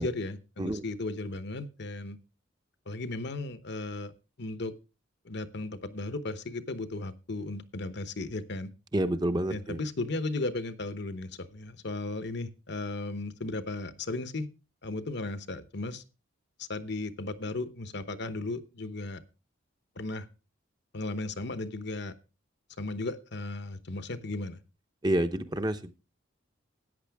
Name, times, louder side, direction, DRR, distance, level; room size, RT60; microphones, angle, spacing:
voice 1, 0.0-2.2 2.9-4.1 4.4-4.7 5.2-8.7 9.5-14.5 14.8-16.0 16.6-19.2 20.0-20.3 20.9-22.1 22.8-24.6, left 2 dB, 60° left, 1.0 m, -35 dB
voice 2, 8.9-9.8 25.0-25.9, right 1 dB, 20° right, 0.8 m, -28 dB
14.0 x 9.5 x 3.5 m
head